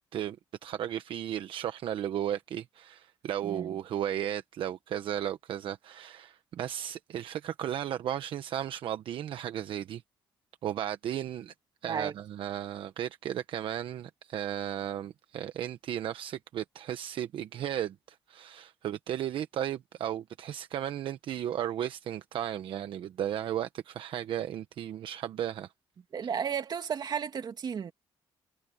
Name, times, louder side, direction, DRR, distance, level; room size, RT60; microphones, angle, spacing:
voice 1, 0.6-10.0 10.6-11.5 11.8-25.7, right 10 dB, 70° right, 1.1 m, -35 dB
voice 2, 3.4-3.8 11.9-12.1 26.1-27.9, right 7 dB, 50° right, 2.5 m, -33 dB
cardioid pair, 95°, 9 cm